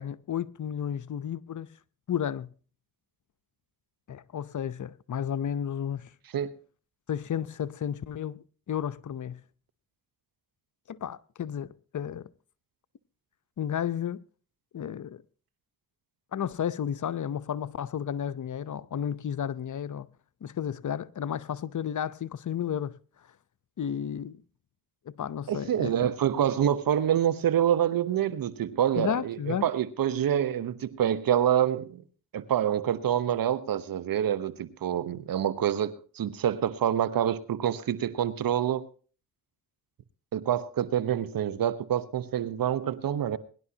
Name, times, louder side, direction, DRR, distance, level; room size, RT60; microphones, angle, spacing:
voice 1, 0.0-1.7 2.1-2.5 4.1-6.1 7.1-9.4 10.9-12.3 13.6-14.2 14.7-15.2 16.3-20.1 20.4-23.0 23.8-24.4 25.1-26.1 29.0-29.7, left 9 dB, 55° left, 0.8 m, -32 dB
voice 2, 25.5-32.0 32.3-38.9 40.3-43.4, right 10 dB, 75° right, 1.0 m, -27 dB
23.0 x 11.0 x 2.8 m
supercardioid pair, 50°, 35 cm